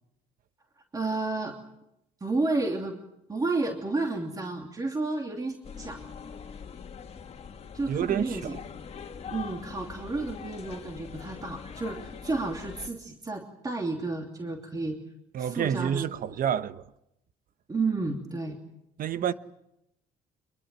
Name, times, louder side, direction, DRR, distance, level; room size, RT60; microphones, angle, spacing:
voice 1, 0.9-1.6 2.2-3.0 3.3-6.0 7.7-8.6 9.3-15.0 15.4-16.1 17.7-18.6, right 3 dB, 20° right, 2.9 m, -31 dB
sound 1, 5.6-12.9, left 6 dB, 35° left, 2.2 m, -42 dB
voice 2, 7.9-8.6 15.3-16.9 19.0-19.3, right 9 dB, 55° right, 1.1 m, -29 dB
25.0 x 22.0 x 7.7 m
cardioid pair, 110°, 17 cm